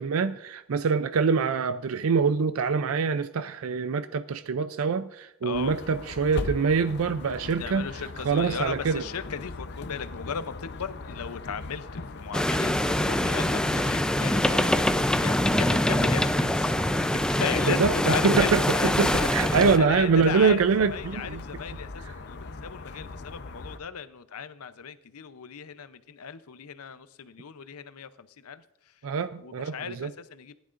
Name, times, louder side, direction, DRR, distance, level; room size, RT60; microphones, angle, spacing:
voice 1, 0.0-7.9 8.2-9.0 17.7-17.9 18.2-21.4 29.0-30.1, right 5 dB, 70° right, 12 dB, 0.4 m, -25 dB
voice 2, 5.4-5.7 7.4-12.7 13.0-14.6 14.9-16.7 17.0-28.6 29.4-30.6, left 6 dB, 85° left, 12 dB, 0.7 m, -36 dB
sound 1, 5.5-23.8, left 3 dB, 50° left, 0.7 m, -40 dB
sound 2, 12.3-19.8, left 1 dB, 5° left, 0.4 m, -24 dB
19.0 x 11.0 x 2.5 m, 0.82 s
head